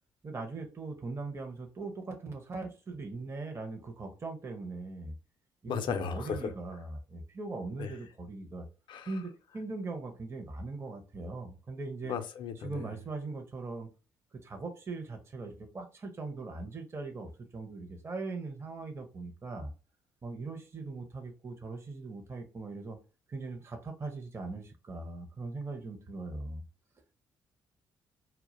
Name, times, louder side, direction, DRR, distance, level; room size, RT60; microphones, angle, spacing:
voice 1, 0.2-5.1 5.6-8.7 9.1-12.2 12.6-13.9 14.4-19.7 20.2-23.0 23.3-26.6, right 3 dB, 25° right, 0.5 m, -40 dB
voice 2, 5.7-6.5 7.8-7.9 8.9-9.1 12.0-12.8, left 6 dB, 55° left, 0.4 m, -35 dB
2.2 x 2.0 x 2.9 m
hypercardioid pair, 45°, 10 cm